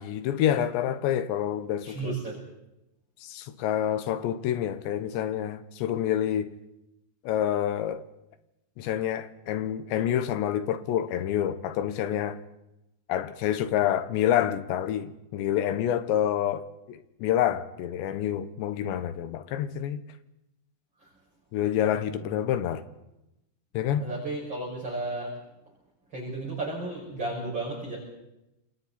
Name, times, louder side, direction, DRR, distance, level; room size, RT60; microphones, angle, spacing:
voice 1, 0.0-2.1 3.2-6.5 7.2-8.0 8.8-12.4 13.1-20.0 21.5-22.8 23.7-24.1, left 10 dB, 85° left, 3.3 m, -28 dB
voice 2, 1.8-2.4 24.0-25.4 26.1-28.0, right 2 dB, 25° right, 6.5 m, -33 dB
29.0 x 27.5 x 4.3 m
omnidirectional pair, 5.0 m